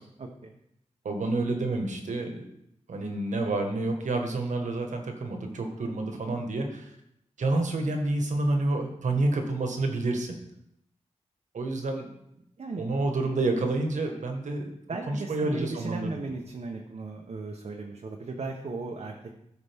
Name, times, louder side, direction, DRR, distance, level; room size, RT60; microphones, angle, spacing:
voice 1, 0.2-0.6 6.3-6.4 12.6-12.8 14.9-19.3, right 3 dB, 55° right, 2 dB, 1.0 m, -36 dB
voice 2, 1.0-2.4 2.9-6.9 7.4-10.4 11.5-12.1 12.8-14.7 15.1-16.1, right 2 dB, 75° right, 3 dB, 1.5 m, -29 dB
13.5 x 5.0 x 3.6 m, 0.78 s
cardioid pair, 75°, 13 cm